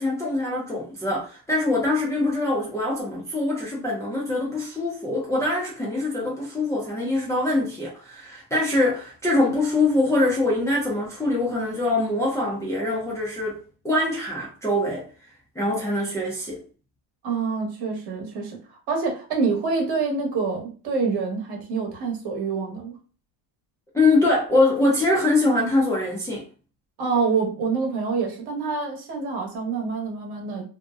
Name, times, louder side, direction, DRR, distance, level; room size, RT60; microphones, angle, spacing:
voice 1, 0.0-13.6 13.8-15.0 15.6-16.6 23.9-26.4, left 2 dB, 5° left, 0.5 m, -23 dB
voice 2, 17.2-18.6 18.9-23.0 27.0-30.6, right 4 dB, 55° right, 1.1 m, -26 dB
2.6 x 2.1 x 2.3 m
cardioid pair, 120°, 47 cm